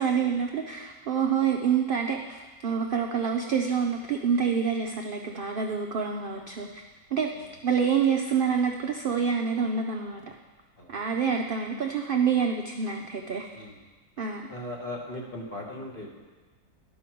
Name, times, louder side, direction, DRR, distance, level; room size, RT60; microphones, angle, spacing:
voice 1, 0.0-6.8 7.1-7.3 7.6-10.4 10.9-13.6 14.2-14.4, right 6 dB, 75° right, 2 dB, 0.5 m, -27 dB
voice 2, 14.5-16.2, left 1 dB, 40° left, -1 dB, 1.3 m, -38 dB
11.5 x 5.6 x 4.5 m, 1.3 s
omnidirectional pair, 1.6 m